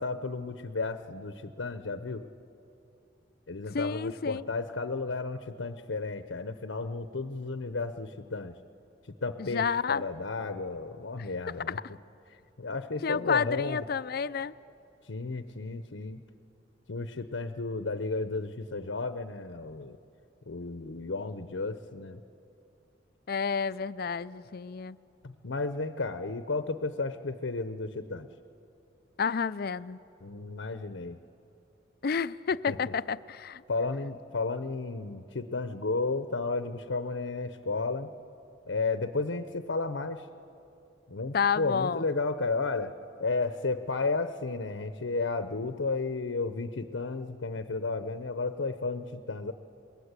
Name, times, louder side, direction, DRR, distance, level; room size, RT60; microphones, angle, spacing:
voice 1, 0.0-2.2 3.5-8.5 9.2-11.8 12.6-13.8 15.1-16.2 16.9-20.0 20.5-22.2 25.2-28.3 30.2-31.2 32.7-32.8 33.7-38.1 38.7-40.3 41.1-42.9 43.2-49.5, left 3 dB, 90° left, 10 dB, 0.9 m, -33 dB
voice 2, 3.7-4.4 9.4-10.0 11.2-11.8 13.0-14.5 23.3-25.0 29.2-30.0 32.0-33.6 41.3-42.1, left 6 dB, 55° left, 16 dB, 0.5 m, -30 dB
26.0 x 22.0 x 8.3 m, 2.8 s
head